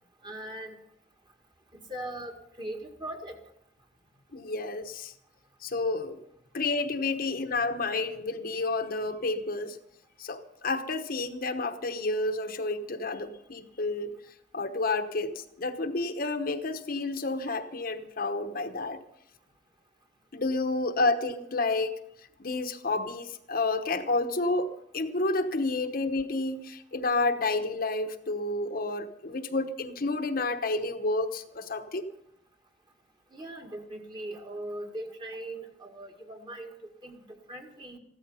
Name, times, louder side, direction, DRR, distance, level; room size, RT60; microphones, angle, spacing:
voice 1, 0.2-0.8 1.9-3.4 33.3-36.7 37.0-38.0, right 1 dB, 25° right, 3 dB, 2.0 m, -40 dB
voice 2, 4.3-5.1 5.6-6.2 6.5-9.8 10.2-14.1 14.5-19.0 20.3-21.9 22.4-32.0, left 3 dB, 55° left, 7 dB, 1.0 m, -30 dB
15.0 x 13.0 x 5.6 m, 0.76 s
head